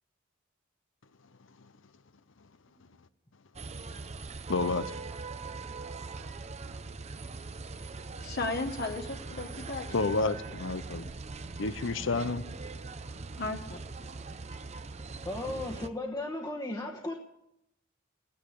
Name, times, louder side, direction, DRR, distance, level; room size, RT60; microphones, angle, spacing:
sound 1, 3.6-15.9, right 3 dB, 35° right, 0.7 m, -41 dB
voice 1, 4.5-4.9 9.9-11.1 11.6-12.4, left 3 dB, 70° left, 14 dB, 0.7 m, -30 dB
voice 2, 8.2-10.4 13.4-13.8, left 3 dB, 55° left, 4 dB, 1.2 m, -35 dB
voice 3, 15.2-17.1, left 2 dB, 20° left, 0 dB, 1.3 m, -36 dB
16.5 x 9.9 x 8.5 m, 0.82 s
head